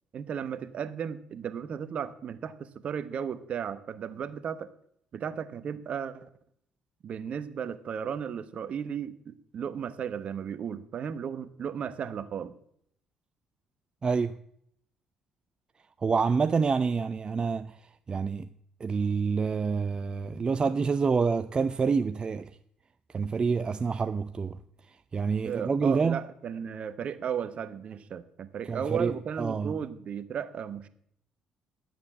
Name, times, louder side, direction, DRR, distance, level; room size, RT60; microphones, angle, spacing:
voice 1, 0.1-4.7 5.1-6.3 7.0-12.6 25.4-30.9, right 7 dB, 55° right, 1.0 m, -35 dB
voice 2, 14.0-14.4 16.0-17.8 18.1-18.5 18.8-22.5 23.1-24.6 25.1-26.2 28.6-29.8, right 5 dB, 35° right, 0.5 m, -27 dB
11.0 x 7.3 x 7.2 m
hypercardioid pair, 55°, 2 cm